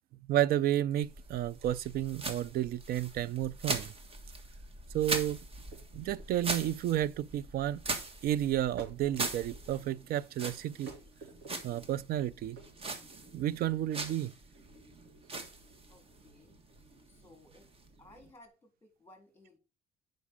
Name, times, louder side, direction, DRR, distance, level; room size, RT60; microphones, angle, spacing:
voice 1, 0.3-3.9 4.9-5.4 5.9-7.8 8.2-10.9 11.6-12.6 13.3-14.3, right 12 dB, 65° right, 0.4 m, -31 dB
sound 1, 1.0-18.3, right 3 dB, 35° right, 1.5 m, -42 dB
sound 2, 5.7-18.5, right 3 dB, 85° right, 3.3 m, -55 dB
voice 2, 15.9-16.6 17.0-17.7 18.0-19.6, left 2 dB, 15° left, 3.1 m, -59 dB
8.3 x 5.2 x 4.9 m
cardioid pair, 110°, 17 cm